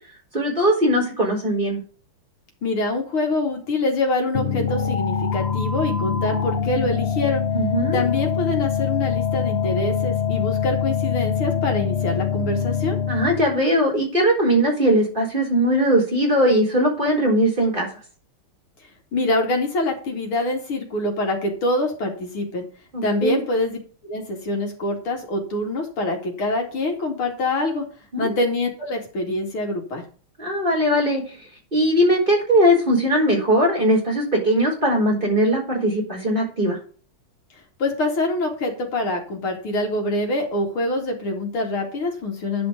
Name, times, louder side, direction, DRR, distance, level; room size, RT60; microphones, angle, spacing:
voice 1, 0.3-1.8 7.5-8.0 13.1-17.9 22.9-23.4 28.1-28.3 30.4-31.4 31.7-36.8, equal, 20° right, -2 dB, 4.5 m, -20 dB
voice 2, 2.6-7.4 7.9-13.0 19.1-22.6 23.0-23.8 24.0-27.9 28.2-30.0 37.8-42.7, left 2 dB, 75° left, 2 dB, 3.4 m, -25 dB
sound 1, 4.3-13.6, left 7 dB, 55° left, 0.7 m, -24 dB
10.5 x 5.2 x 6.7 m, 0.40 s
omnidirectional pair, 2.3 m